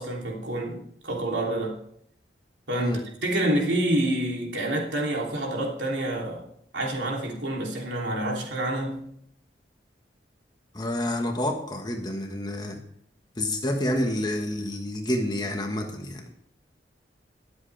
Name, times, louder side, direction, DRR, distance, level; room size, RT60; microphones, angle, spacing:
voice 1, 0.0-1.8 2.7-6.5 6.7-9.1, right 1 dB, 85° right, 3.2 m, -28 dB
voice 2, 10.7-12.8 13.4-16.3, left 1 dB, 25° left, 1.5 m, -28 dB
21.5 x 7.9 x 3.5 m
head